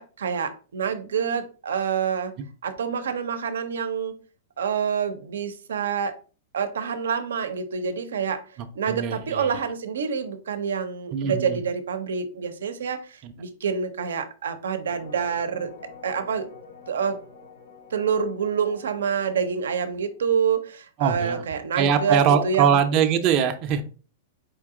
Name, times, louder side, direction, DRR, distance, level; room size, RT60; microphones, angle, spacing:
voice 1, 0.0-2.3 2.6-4.2 4.6-6.2 6.5-8.4 8.7-15.7 16.0-16.5 16.9-17.2 17.9-22.8, right 6 dB, 90° right, 10 dB, 0.6 m, -27 dB
voice 2, 8.9-9.5 11.1-11.6 13.2-13.3 21.0-21.4 21.7-23.8, right 7 dB, 35° right, 5 dB, 0.5 m, -22 dB
sound 1, 14.8-20.2, left 4 dB, 85° left, 1.8 m, -47 dB
4.5 x 2.8 x 3.6 m, 0.37 s
hypercardioid pair, 140°, 0 cm